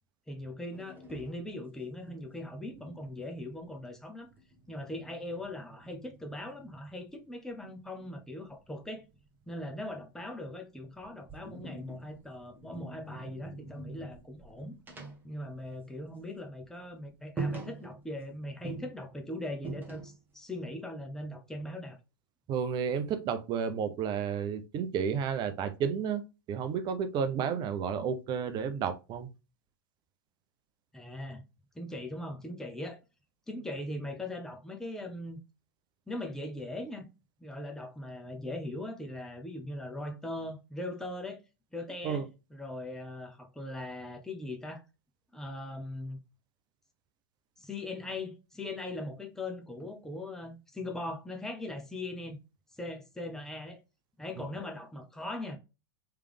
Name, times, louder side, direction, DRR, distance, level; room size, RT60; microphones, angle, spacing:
voice 1, 0.3-4.3 4.7-9.1 9.4-14.8 15.2-22.0 30.9-31.4 31.7-33.0 33.5-35.4 36.1-37.1 37.4-41.4 41.7-42.3 42.5-44.8 45.3-46.2 47.6-52.4 52.7-53.8 54.2-55.6, left 1 dB, 5° left, 0.8 m, -40 dB
sound 1, 0.7-3.9 4.2-7.1 8.5-10.5 10.9-16.2 16.5-16.6 17.0-17.1 17.4-18.3 18.6-20.4, right 3 dB, 15° right, 1.3 m, -45 dB
voice 2, 22.5-26.2 26.5-29.3 42.0-42.2 54.4-54.5, right 7 dB, 35° right, 0.7 m, -31 dB
3.4 x 3.3 x 3.4 m
hypercardioid pair, 100°, 12 cm